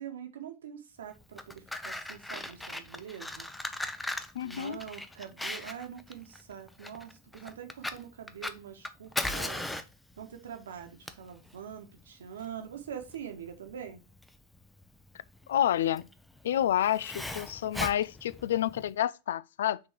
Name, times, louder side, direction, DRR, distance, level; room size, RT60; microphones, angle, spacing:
voice 1, 0.0-3.5 4.4-9.6 10.2-14.0, right 8 dB, 65° right, 1.4 m, -44 dB
Fire, 1.2-18.9, left 1 dB, 5° left, 0.7 m, -39 dB
voice 2, 4.3-4.8 15.5-16.1 16.4-19.8, left 11 dB, 60° left, 0.3 m, -29 dB
6.1 x 3.8 x 4.5 m
figure-of-eight pair, 90°, 0 cm